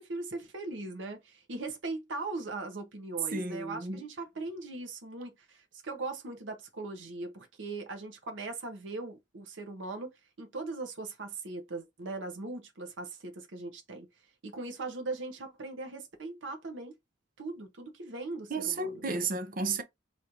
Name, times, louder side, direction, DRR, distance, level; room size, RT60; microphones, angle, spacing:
voice 1, 0.0-14.1 14.4-16.9 17.4-19.2, right 3 dB, 85° right, 0.9 m, -39 dB
voice 2, 3.3-4.0 18.5-19.8, right 3 dB, 50° right, 0.6 m, -33 dB
3.1 x 2.6 x 4.4 m
head